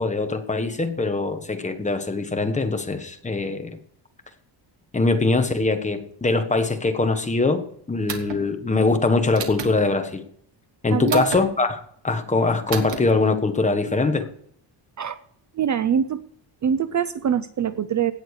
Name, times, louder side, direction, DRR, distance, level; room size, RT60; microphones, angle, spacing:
voice 1, 0.0-3.8 4.9-7.6 7.9-10.2 10.8-14.3, left 3 dB, 15° left, 7 dB, 1.2 m, -22 dB
sound 1, 8.1-8.4 9.3-9.7 11.1-11.4 12.7-13.0, right 7 dB, 65° right, 2.1 m, -31 dB
voice 2, 10.9-11.2 15.0-15.2 15.6-16.2 16.6-18.1, right 8 dB, 40° right, 14 dB, 0.5 m, -23 dB
16.5 x 9.2 x 4.8 m, 0.66 s
cardioid pair, 155°, 45 cm